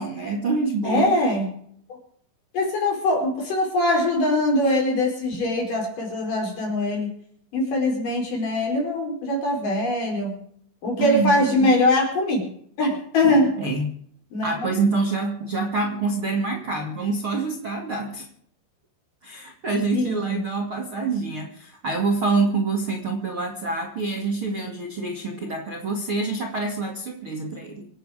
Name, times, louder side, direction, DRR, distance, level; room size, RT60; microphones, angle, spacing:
voice 1, 0.0-1.2 11.0-11.8 13.2-13.9 14.4-18.3 19.2-27.9, right 3 dB, 40° right, 1 dB, 2.2 m, -26 dB
voice 2, 0.8-1.5 1.9-2.0 2.5-7.1 7.5-10.3 10.8-12.4 12.8-13.5 14.3-14.7 19.9-20.4, left 1 dB, 45° left, 1 dB, 5.9 m, -22 dB
27.0 x 9.4 x 5.0 m, 0.65 s
omnidirectional pair, 5.3 m